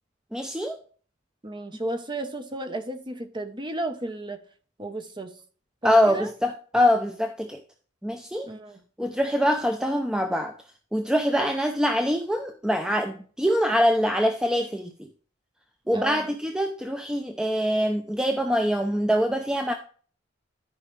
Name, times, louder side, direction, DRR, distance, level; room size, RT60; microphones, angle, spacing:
voice 1, 0.3-0.8 5.8-7.6 8.0-8.5 9.0-10.5 10.9-14.9 15.9-19.7, equal, 5° right, 0.6 m, -24 dB
voice 2, 1.4-4.4 4.8-5.4 5.8-6.3 8.4-8.8 15.9-16.3, right 1 dB, 25° right, 1.0 m, -33 dB
13.0 x 4.9 x 3.3 m
head